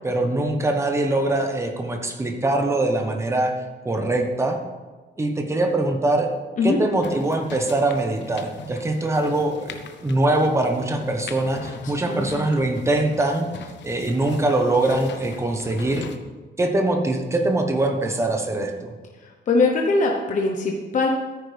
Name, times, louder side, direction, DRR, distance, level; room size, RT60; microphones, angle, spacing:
voice 1, 0.0-3.5 3.8-4.6 5.2-6.3 6.6-13.5 13.8-16.1 16.6-18.9, right 2 dB, 15° right, 4 dB, 1.1 m, -23 dB
sound 1, 7.0-16.2, left 6 dB, 90° left, 0.9 m, -41 dB
voice 2, 19.2-21.1, left 3 dB, 45° left, 1 dB, 1.0 m, -21 dB
13.5 x 9.5 x 3.4 m, 1.3 s
cardioid pair, 160°, 18 cm